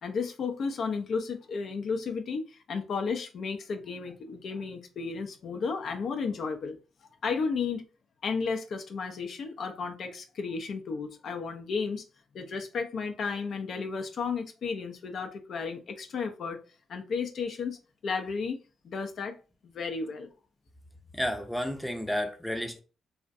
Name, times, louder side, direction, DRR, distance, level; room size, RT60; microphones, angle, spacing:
voice 1, 0.0-6.8 7.2-7.8 8.2-12.0 12.3-16.6 16.9-17.8 18.0-18.6 18.8-19.4 19.6-20.3, left 5 dB, 60° left, 0.4 m, -33 dB
voice 2, 21.1-22.8, equal, 5° left, 0.5 m, -31 dB
2.5 x 2.0 x 2.5 m
supercardioid pair, 55°, 0 cm